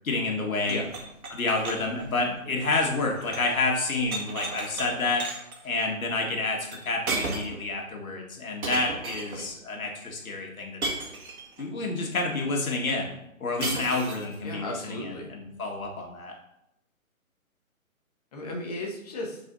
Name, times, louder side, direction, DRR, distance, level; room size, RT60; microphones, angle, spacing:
voice 1, 0.0-0.8 1.3-5.2 5.6-10.8 11.6-13.1 13.4-16.3, left 3 dB, 75° left, 0 dB, 1.8 m, -29 dB
sound 1, 0.6-3.5 3.8-4.9 5.2-5.6 6.7-6.8 7.1-7.6 8.6-9.5 10.8-11.6 13.6-14.4, right 3 dB, 85° right, 1.9 m, -34 dB
voice 2, 14.4-15.3 18.3-19.4, left 1 dB, 25° left, -1 dB, 1.1 m, -35 dB
9.1 x 4.8 x 2.7 m, 0.82 s
hypercardioid pair, 165°, 42 cm